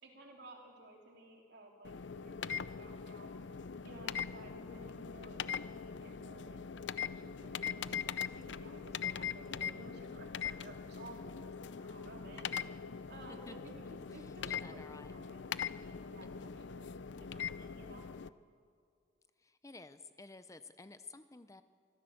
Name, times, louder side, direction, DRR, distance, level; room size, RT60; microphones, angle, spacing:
voice 1, 0.0-3.3 3.8-13.9 14.1-16.9 17.2-18.0, right 1 dB, 60° right, 1 dB, 3.3 m, -55 dB
sound 1, 1.8-18.3, left 7 dB, 65° left, 0.5 m, -42 dB
voice 2, 14.1-15.1 16.4-16.5 19.4-21.6, left 3 dB, 15° left, 11 dB, 0.6 m, -53 dB
24.5 x 15.0 x 7.8 m, 2.3 s
head